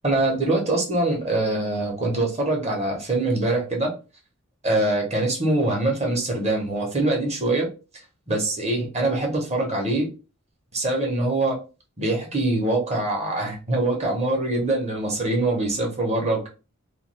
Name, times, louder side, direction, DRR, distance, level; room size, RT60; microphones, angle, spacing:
voice 1, 0.0-3.9 4.6-7.7 8.3-10.1 10.7-11.6 12.0-16.5, right 2 dB, 30° right, 0 dB, 0.9 m, -23 dB
2.5 x 2.3 x 3.1 m, 0.31 s
head